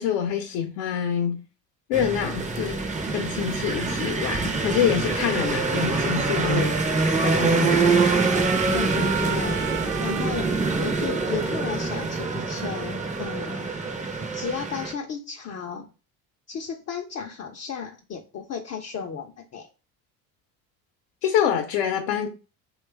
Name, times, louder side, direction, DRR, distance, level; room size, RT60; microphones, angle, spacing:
voice 1, 0.0-1.4 1.9-2.8 3.1-6.8 7.2-7.7 21.2-22.3, left 9 dB, 70° left, 0.7 m, -26 dB
sound 1, 1.9-14.9, right 3 dB, 15° right, 0.6 m, -25 dB
Trumpet, 5.6-13.6, right 8 dB, 80° right, 0.8 m, -37 dB
voice 2, 8.7-13.7 14.3-15.9 16.5-19.7, left 7 dB, 35° left, 0.5 m, -34 dB
3.0 x 2.3 x 3.3 m
supercardioid pair, 80°, 44 cm